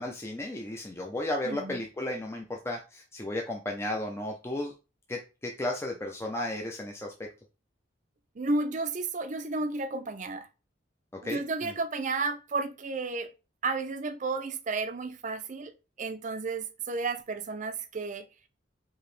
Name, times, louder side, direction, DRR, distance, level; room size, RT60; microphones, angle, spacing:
voice 1, 0.0-4.7 5.1-7.1 11.1-11.7, left 1 dB, 15° left, 0.5 m, -34 dB
voice 2, 1.4-1.8 8.4-10.5 11.2-13.3 13.6-15.7 16.0-18.3, right 3 dB, 40° right, 0.5 m, -32 dB
4.7 x 2.9 x 3.2 m
head